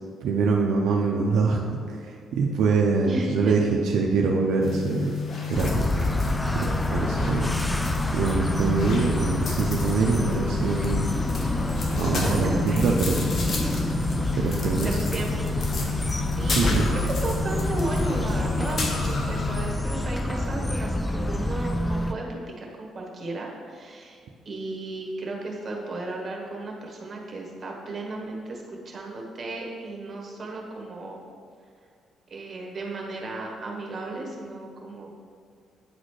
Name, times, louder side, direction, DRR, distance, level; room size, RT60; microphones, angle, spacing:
voice 1, 0.2-1.6 1.9-5.2 5.5-5.9 6.5-7.5 8.1-11.1 12.0-13.3 14.3-14.9 16.5-16.9, right 4 dB, 80° right, 0 dB, 0.5 m, -24 dB
voice 2, 3.0-3.5 6.3-6.7 12.1-13.0 14.2-15.7 16.4-24.2 24.4-31.2 32.3-35.2, right 2 dB, 40° right, -1 dB, 1.4 m, -35 dB
sound 1, 4.6-19.7, left 5 dB, 55° left, 0.9 m, -31 dB
sound 2, 5.5-22.1, left 1 dB, 10° left, 0.4 m, -27 dB
8.8 x 4.0 x 3.2 m, 2.1 s
cardioid pair, 90°, 0 cm